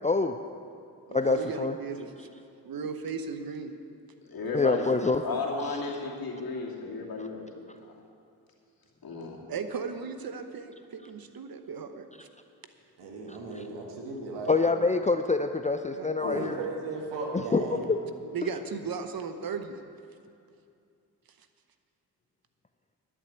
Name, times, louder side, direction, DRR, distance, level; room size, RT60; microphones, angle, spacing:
voice 1, 0.0-0.4 1.1-1.7 4.5-5.2 14.5-16.6 17.5-18.0, left 3 dB, 15° left, 7 dB, 0.6 m, -26 dB
voice 2, 1.1-2.1 2.6-3.7 9.5-12.1 15.9-16.6 18.3-19.8, right 5 dB, 55° right, 8 dB, 1.0 m, -36 dB
voice 3, 4.3-4.9 5.2-7.5 9.0-9.4 16.2-16.5, left 4 dB, 55° left, -2 dB, 2.6 m, -33 dB
voice 4, 13.0-14.6 16.3-17.8, right 3 dB, 85° right, 1 dB, 1.7 m, -36 dB
11.5 x 7.2 x 8.2 m, 2.5 s
supercardioid pair, 45°, 41 cm